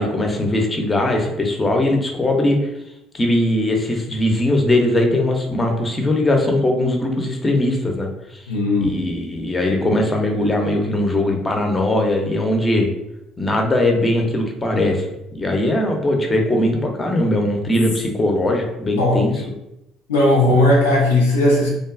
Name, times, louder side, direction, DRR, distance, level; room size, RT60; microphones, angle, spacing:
voice 1, 0.0-2.6 3.1-8.4 8.8-12.9 13.4-15.1 15.3-19.3, left 1 dB, 25° left, 2 dB, 0.6 m, -20 dB
voice 2, 8.5-9.1 19.0-19.3 20.1-21.7, left 1 dB, 90° left, -3 dB, 0.6 m, -16 dB
2.5 x 2.2 x 2.4 m, 0.88 s
hypercardioid pair, 60°, 0 cm